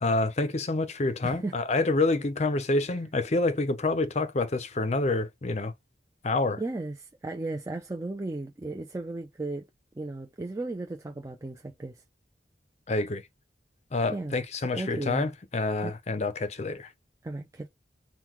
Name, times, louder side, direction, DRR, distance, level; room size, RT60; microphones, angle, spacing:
voice 1, 0.0-5.7 6.2-6.6 12.9-13.2 13.9-16.9, left 2 dB, 40° left, 0.6 m, -27 dB
voice 2, 1.2-1.5 2.9-3.0 6.6-9.7 10.0-12.0 14.1-14.3 14.7-15.3 15.8-15.9 17.2-17.7, right 2 dB, 20° right, 0.4 m, -35 dB
3.8 x 2.2 x 2.9 m
head